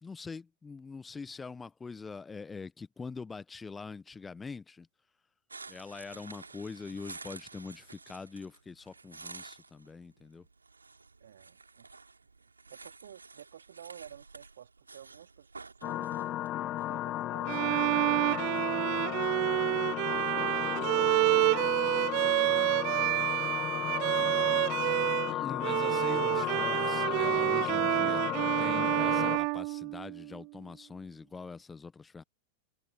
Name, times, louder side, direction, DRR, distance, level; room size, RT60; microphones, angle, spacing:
voice 1, 0.0-4.9 5.7-10.5 25.3-28.2 28.6-32.2, left 4 dB, 15° left, 1.3 m, -43 dB
sound 1, 5.5-21.5, right 4 dB, 80° right, 3.8 m, -52 dB
voice 2, 11.2-11.9 12.4-15.5 15.8-16.3 16.8-18.4 18.8-19.8 20.3-22.6 23.3-24.7 25.5-26.6, right 10 dB, 65° right, 2.9 m, -53 dB
sound 2, 15.8-29.4, left 14 dB, 35° left, 0.5 m, -34 dB
Bowed string instrument, 17.5-25.3 25.6-30.4, right 34 dB, 45° right, 0.3 m, -29 dB
figure-of-eight pair, 90°, 0 cm